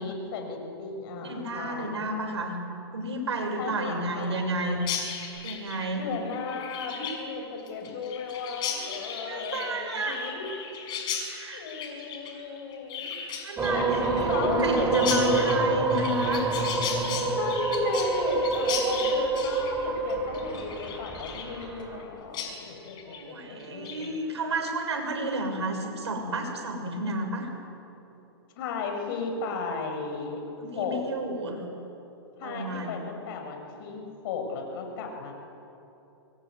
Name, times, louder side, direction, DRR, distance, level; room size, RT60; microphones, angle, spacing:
voice 1, 0.0-2.1 3.6-4.6 5.9-10.5 11.5-13.1 13.7-13.9 14.3-15.5 17.3-24.1 28.6-30.4 30.7-31.0 32.4-35.3, left 4 dB, 55° left, 3 dB, 6.4 m, -35 dB
voice 2, 1.2-2.6 2.9-4.8 5.4-6.1 9.2-10.4 11.3-11.6 13.4-16.6 23.1-27.5 30.6-31.6 32.4-32.9, right 1 dB, 85° right, 3 dB, 6.5 m, -31 dB
Chirp tweet, 4.8-22.0 22.3-22.5 22.8-23.2 23.6-24.1, left 7 dB, 30° left, 5.9 m, -36 dB
sound 1, 13.6-22.0, right 3 dB, 15° right, 4.5 m, -27 dB
25.0 x 22.0 x 9.5 m, 3.0 s
hypercardioid pair, 130°, 14 cm